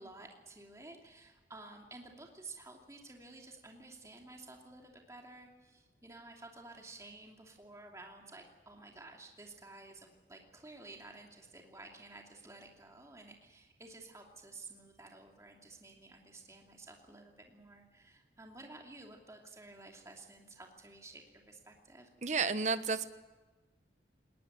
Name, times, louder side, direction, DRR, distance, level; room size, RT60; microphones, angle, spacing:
voice 1, 0.0-22.1, right 2 dB, 15° right, 1 dB, 2.7 m, -53 dB
voice 2, 22.2-23.0, right 4 dB, 40° right, 12 dB, 1.0 m, -31 dB
20.0 x 19.5 x 9.4 m, 1.2 s
head